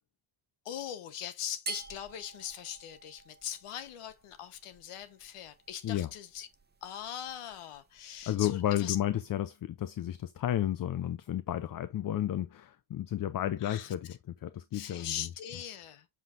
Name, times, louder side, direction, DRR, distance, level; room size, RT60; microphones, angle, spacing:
voice 1, 0.6-6.5 6.8-9.0 13.6-13.9 14.7-16.1, left 10 dB, 85° left, 1.1 m, -41 dB
sound 1, 1.7-8.6, right 5 dB, 20° right, 0.9 m, -49 dB
voice 2, 8.3-15.3, left 12 dB, 45° left, 0.5 m, -32 dB
7.2 x 5.9 x 2.5 m
cardioid pair, 125°, 50 cm